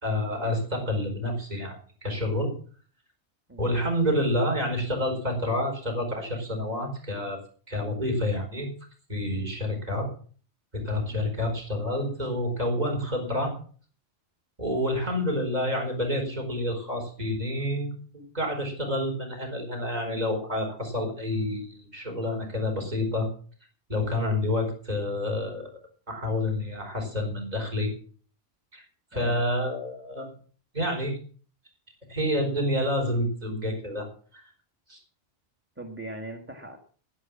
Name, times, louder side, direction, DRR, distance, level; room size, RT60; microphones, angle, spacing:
voice 1, 0.0-2.5 3.6-7.4 7.7-8.7 9.1-10.1 10.7-13.6 14.6-23.3 23.9-25.7 26.1-27.9 28.7-28.8 29.1-30.3 30.7-31.2 32.1-34.1 34.3-34.5 34.9-35.0, left 1 dB, 35° right, 3 dB, 4.7 m, -28 dB
voice 2, 29.1-29.4 35.8-36.8, right 1 dB, 10° right, 4 dB, 1.8 m, -40 dB
11.5 x 11.5 x 7.4 m, 0.44 s
omnidirectional pair, 1.2 m